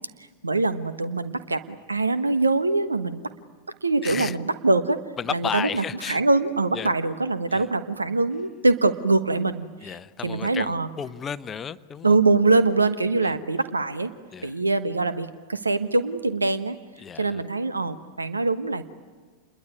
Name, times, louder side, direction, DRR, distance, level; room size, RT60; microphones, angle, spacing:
voice 1, 0.4-3.3 3.8-5.0 5.3-9.9 10.2-10.9 12.0-14.1 14.4-16.8 17.2-18.8, right 3 dB, 80° right, 12 dB, 1.2 m, -23 dB
voice 2, 4.0-4.4 5.2-6.2 6.7-6.9 7.5-7.6 9.8-12.2 13.2-13.3 14.3-14.6 17.0-17.4, left 7 dB, 20° left, 15 dB, 0.8 m, -33 dB
28.5 x 21.5 x 9.7 m, 1.5 s
figure-of-eight pair, 90°, 0 cm